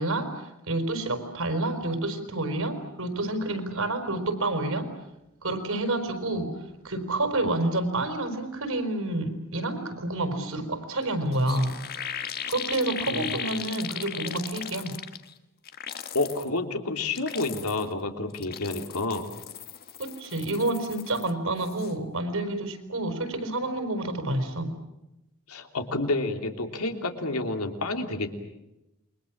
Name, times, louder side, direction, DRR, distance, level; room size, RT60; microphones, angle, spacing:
voice 1, 0.0-4.9 5.4-6.5 6.8-11.8 12.5-15.0 20.0-24.7, right 2 dB, 65° right, 7 dB, 4.9 m, -29 dB
sound 1, 11.0-11.1 11.3-15.3 15.7-16.5 17.0-17.9 18.3-21.3 21.6-21.9, left 8 dB, 45° left, 1.6 m, -37 dB
voice 2, 13.1-13.4 16.1-19.3 25.5-28.3, left 2 dB, 80° left, 5 dB, 3.3 m, -29 dB
28.5 x 23.5 x 7.4 m, 0.94 s
head